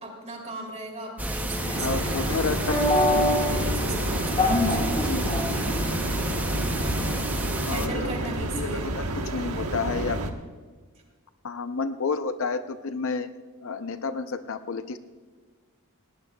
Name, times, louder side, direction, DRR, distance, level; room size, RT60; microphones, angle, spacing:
voice 1, 0.0-2.0 3.4-4.9 7.6-9.0, right 2 dB, 30° right, 1 dB, 2.9 m, -37 dB
sound 1, 1.2-7.9, right 1 dB, 5° right, 0.6 m, -31 dB
sound 2, 1.5-7.2, left 1 dB, 25° left, 1.9 m, -27 dB
sound 3, 1.7-10.3, right 1 dB, 90° right, 1.2 m, -30 dB
voice 2, 1.8-2.6 5.0-5.4 7.7-10.2 11.4-13.3 13.6-15.0, left 4 dB, 60° left, 10 dB, 0.6 m, -30 dB
19.0 x 17.5 x 2.3 m, 1.5 s
head